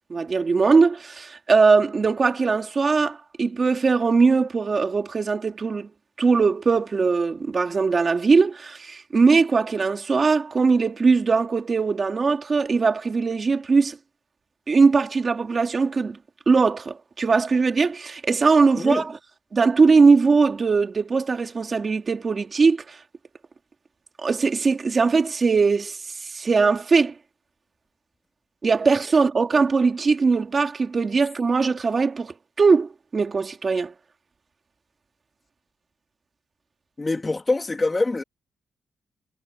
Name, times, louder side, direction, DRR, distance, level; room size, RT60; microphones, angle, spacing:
voice 1, 0.1-5.9 6.2-14.0 14.7-16.2 16.5-19.2 19.5-23.0 24.2-27.1 28.6-33.9, right 4 dB, 35° right, 2.5 m, -20 dB
voice 2, 18.7-19.0 37.0-38.2, left 2 dB, 20° left, 2.2 m, -24 dB
cardioid pair, 135°, 0 cm